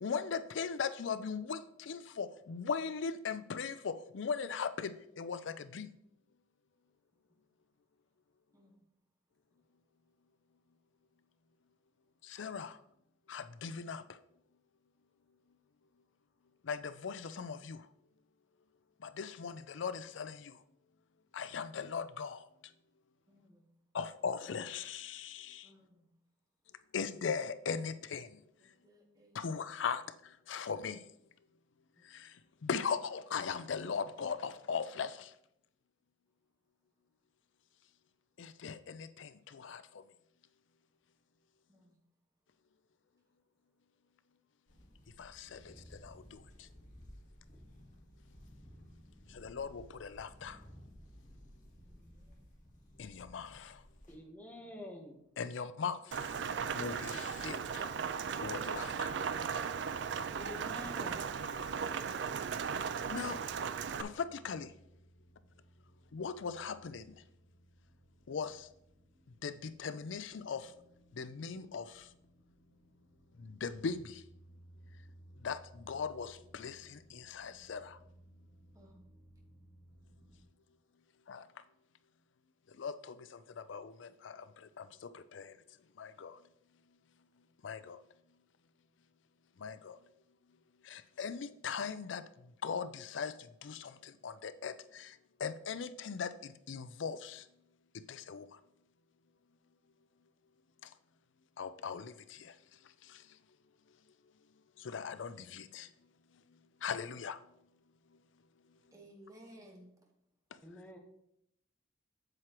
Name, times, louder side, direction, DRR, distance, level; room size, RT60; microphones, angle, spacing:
voice 1, 0.0-5.9 12.2-12.8 13.3-14.0 16.6-17.8 19.0-20.5 21.3-22.5 23.9-25.7 26.9-28.3 29.3-30.0 30.5-31.0 32.1-32.3 32.6-35.3 38.4-39.8 45.2-45.7 46.0-46.4 49.3-50.6 53.0-53.8 55.4-56.3 56.7-57.8 58.4-59.1 63.1-63.4 64.0-64.7 66.1-67.1 68.3-68.7 69.4-70.7 71.2-72.1 73.4-74.2 75.4-78.0 81.3-81.4 82.8-85.5 86.0-86.4 87.6-88.0 89.6-90.0 90.8-92.2 92.6-93.3 93.6-97.4 98.1-98.5 101.6-102.5 103.1-103.2 104.8-105.9 106.8-107.4, left 6 dB, 80° left, 0.5 m, -39 dB
voice 2, 8.5-8.9 9.5-9.6 23.3-23.8 25.6-26.2 28.6-29.9 31.9-32.2 41.7-42.0 51.8-52.6 54.6-55.0 78.7-79.1 108.9-110.1, equal, 15° right, 1.3 m, -61 dB
sound 1, 44.7-54.2, equal, 40° left, 1.7 m, -56 dB
voice 3, 54.1-55.2 60.4-61.3 110.6-111.0, left 1 dB, 10° left, 1.1 m, -48 dB
Rain, 56.1-64.0, right 6 dB, 65° right, 0.4 m, -37 dB
sound 2, 61.5-80.4, right 1 dB, 50° right, 1.4 m, -62 dB
7.8 x 7.4 x 3.0 m
head